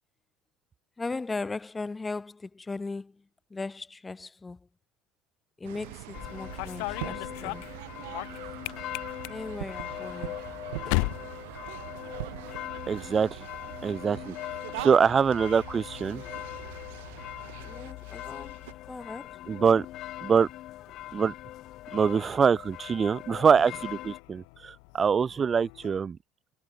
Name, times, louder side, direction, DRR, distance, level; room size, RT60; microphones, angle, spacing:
voice 1, 1.0-4.7 5.6-7.7 9.3-10.4 17.6-19.4, left 3 dB, 20° left, 5.7 m, -38 dB
sound 1, 5.6-18.7, right 21 dB, 80° right, 2.3 m, -42 dB
sound 2, 6.1-24.2, left 15 dB, 60° left, 3.4 m, -41 dB
sound 3, 6.2-12.4 12.7-13.3 14.3-26.0, left 40 dB or more, 75° left, 3.7 m, -40 dB
voice 2, 12.9-13.3 13.8-14.3 14.8-16.2 19.5-19.8 20.2-20.5 21.1-21.3 21.9-26.2, right 6 dB, 30° right, 1.5 m, -24 dB
hypercardioid pair, 85°, 0 cm